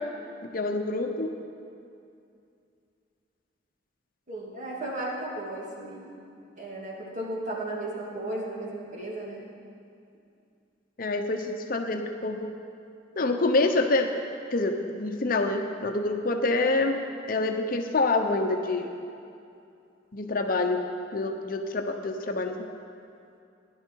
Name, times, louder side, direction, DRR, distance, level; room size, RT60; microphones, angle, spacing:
voice 1, 0.5-1.3 11.0-12.5 13.2-14.1 14.5-17.0 17.3-18.9 20.1-20.8 21.1-22.6, left 2 dB, 50° left, 4 dB, 0.8 m, -26 dB
voice 2, 4.3-6.1 6.6-9.5, right 1 dB, 45° right, -4 dB, 2.4 m, -35 dB
16.0 x 10.5 x 4.6 m, 2.5 s
head